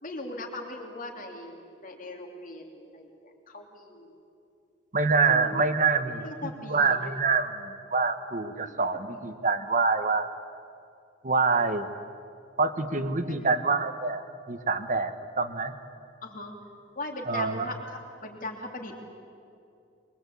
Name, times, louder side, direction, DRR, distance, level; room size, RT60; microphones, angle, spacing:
voice 1, 0.0-4.2 5.3-5.7 6.2-7.1 8.6-9.2 13.3-13.5 16.2-16.6 16.9-19.0, left 2 dB, 45° left, 1 dB, 2.9 m, -40 dB
voice 2, 4.9-10.3 11.2-11.9 12.6-15.7 17.3-17.7, right 4 dB, 45° right, 10 dB, 1.4 m, -26 dB
23.5 x 22.5 x 8.5 m, 2.5 s
head